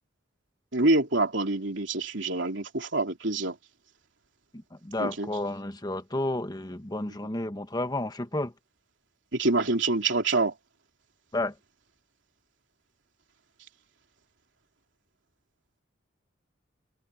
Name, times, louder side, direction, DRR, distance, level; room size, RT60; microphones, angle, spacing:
voice 1, 0.7-3.6 5.0-5.3 9.3-10.5, right 2 dB, 65° right, 3.5 m, -26 dB
voice 2, 4.5-8.5 11.3-11.5, left 1 dB, 20° left, 1.5 m, -31 dB
head